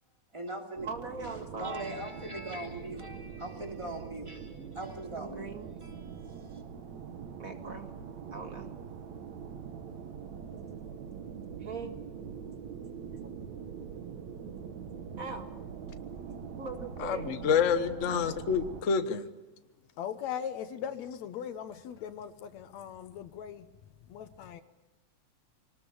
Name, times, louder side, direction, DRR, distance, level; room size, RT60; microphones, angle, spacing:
voice 1, 0.3-0.9 1.2-6.6, right 1 dB, 10° right, 2.7 m, -41 dB
voice 2, 0.8-1.9 3.0-3.3 4.6-4.7 5.1-5.7 7.4-7.9 8.3-8.7 11.6-11.9 15.2-15.5 16.6-17.3, right 4 dB, 30° right, 2.1 m, -41 dB
sound 1, 0.8-18.8, right 7 dB, 70° right, 2.7 m, -43 dB
voice 3, 17.0-19.3, left 6 dB, 85° left, 0.6 m, -28 dB
voice 4, 20.0-23.7 24.1-24.6, left 9 dB, 70° left, 2.2 m, -39 dB
24.5 x 19.5 x 7.1 m
omnidirectional pair, 3.3 m